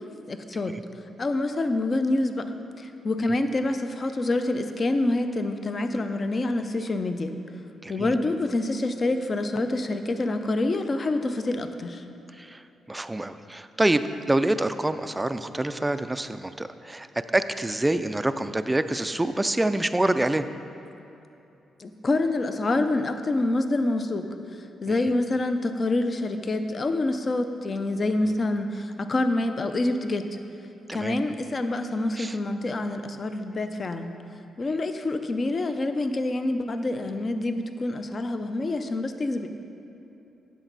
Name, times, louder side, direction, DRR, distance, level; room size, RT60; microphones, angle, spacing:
voice 1, 0.3-0.8 1.2-7.3 7.9-12.0 21.8-24.3 24.8-30.3 30.9-34.1 34.6-39.5, left 2 dB, 35° left, 8 dB, 0.5 m, -27 dB
voice 2, 7.8-8.1 12.3-12.6 12.9-20.5 24.9-25.0 28.2-28.3 30.9-31.2 32.2-32.4, right 1 dB, 15° right, 11 dB, 0.3 m, -26 dB
10.5 x 7.3 x 4.0 m, 2.9 s
cardioid pair, 105°, 0 cm